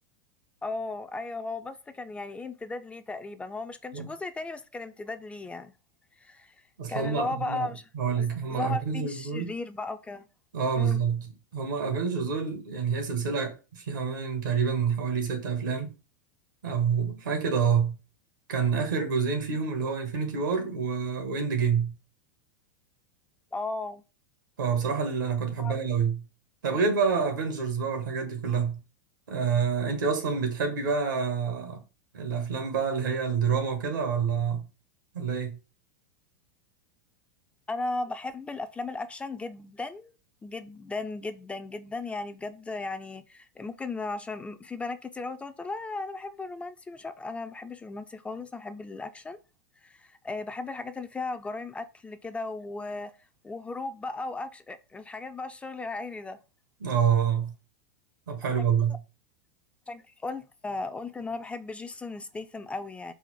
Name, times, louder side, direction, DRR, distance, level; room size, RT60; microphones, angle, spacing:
voice 1, 0.6-5.7 6.2-6.5 6.9-7.8 8.2-10.3 10.7-11.0 23.5-24.0 25.6-25.8 37.7-40.1 40.4-49.4 49.8-53.1 53.4-56.4 58.4-58.7 59.9-63.1, left 3 dB, 10° left, 0.3 m, -36 dB
voice 2, 6.8-7.7 7.9-9.5 10.5-15.9 16.6-17.9 18.5-21.9 24.6-26.2 26.6-28.8 29.3-31.8 32.1-34.6 35.1-35.6 56.8-57.5 58.3-59.0, right 6 dB, 85° right, 1.3 m, -27 dB
4.1 x 2.1 x 4.5 m
hypercardioid pair, 110°, 10 cm